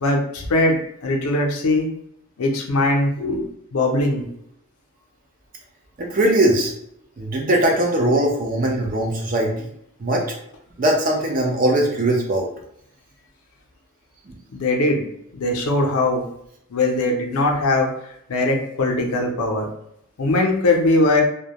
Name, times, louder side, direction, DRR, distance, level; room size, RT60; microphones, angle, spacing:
voice 1, 0.0-0.8 1.0-1.9 2.4-3.4 3.7-4.2 14.5-15.0 15.3-16.2 16.7-17.9 18.3-19.7 20.2-21.2, left 2 dB, 85° left, 1 dB, 0.5 m, -20 dB
voice 2, 6.0-6.7 7.2-9.7 10.0-10.2 10.8-12.5 14.3-14.4, right 1 dB, 40° right, 0 dB, 0.5 m, -20 dB
2.1 x 2.1 x 2.8 m, 0.73 s
head